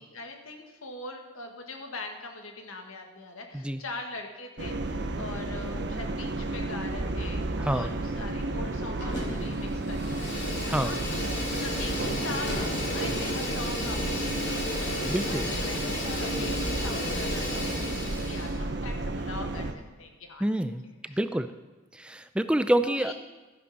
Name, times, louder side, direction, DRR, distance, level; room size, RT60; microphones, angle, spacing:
voice 1, 0.0-11.2 11.6-19.7 20.0-20.4 22.8-23.1, left 2 dB, 85° left, 3 dB, 1.6 m, -42 dB
sound 1, 4.6-19.7, right 2 dB, 55° right, 0.8 m, -32 dB
voice 2, 7.6-7.9 10.7-11.0 15.1-15.5 20.4-20.8 21.1-21.5 21.9-23.1, right 1 dB, 5° right, 11 dB, 0.4 m, -27 dB
Fire, 9.0-9.5 9.8-18.6, left 2 dB, 55° left, 3.2 m, -34 dB
12.5 x 10.0 x 4.1 m, 1.3 s
head